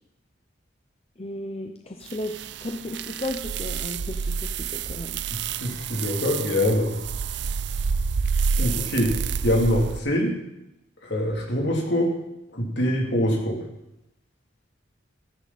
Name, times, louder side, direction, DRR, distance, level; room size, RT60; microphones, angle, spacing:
voice 1, 1.2-2.3 2.6-5.2, left 1 dB, 30° left, 3 dB, 0.9 m, -34 dB
sound 1, 2.1-10.0, right 5 dB, 60° right, 0.5 m, -29 dB
voice 2, 5.3-6.9 8.6-9.2 9.4-10.3 11.0-12.1 12.5-13.6, equal, 60° left, 0 dB, 3.2 m, -24 dB
16.0 x 14.0 x 4.3 m, 0.89 s
head